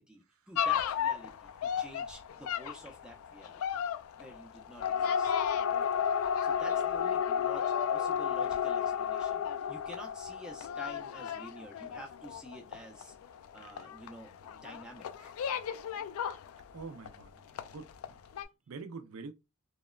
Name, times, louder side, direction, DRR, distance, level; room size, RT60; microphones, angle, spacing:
voice 1, 0.0-3.6 4.2-5.3 6.4-13.1 13.5-15.3, right 1 dB, 5° right, 0.4 m, -50 dB
sound 1, 0.6-17.2 17.6-18.1 18.4-18.5, left 8 dB, 70° left, 0.3 m, -33 dB
voice 2, 16.7-18.2 18.7-19.3, right 4 dB, 70° right, 0.4 m, -46 dB
2.9 x 2.1 x 2.3 m
head